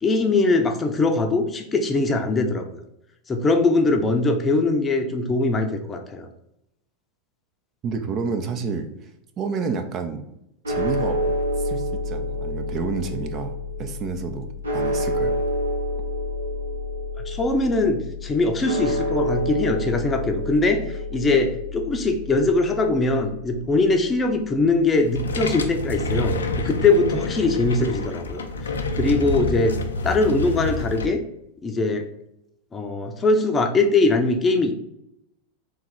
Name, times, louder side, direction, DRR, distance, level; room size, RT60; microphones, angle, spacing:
voice 1, 0.0-2.7 3.3-6.3 17.3-28.4 29.0-29.8 30.0-31.2 31.6-32.1 32.7-34.7, left 3 dB, 20° left, 5 dB, 0.7 m, -21 dB
voice 2, 7.8-8.9 9.4-10.2 10.7-11.3 11.6-15.4, right 5 dB, 35° right, 6 dB, 0.6 m, -29 dB
sound 1, 10.6-24.9, left 1 dB, 85° right, 1.0 m, -29 dB
sound 2, 25.0-31.0, left 2 dB, 80° left, 0.5 m, -27 dB
3.8 x 3.0 x 4.6 m, 0.82 s
figure-of-eight pair, 90°, 0 cm